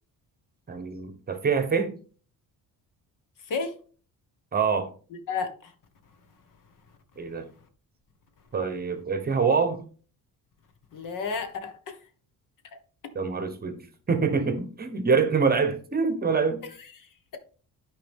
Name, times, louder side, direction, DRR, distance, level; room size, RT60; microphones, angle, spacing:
voice 1, 0.7-2.0 4.5-4.9 7.2-7.5 8.5-9.8 13.1-13.8 14.1-16.6, right 5 dB, 25° right, 1.0 m, -25 dB
voice 2, 5.3-5.7 10.9-12.0 12.7-12.8 17.0-17.1, left 5 dB, 60° left, 1.5 m, -32 dB
12.5 x 5.0 x 3.6 m
cardioid pair, 170°, 36 cm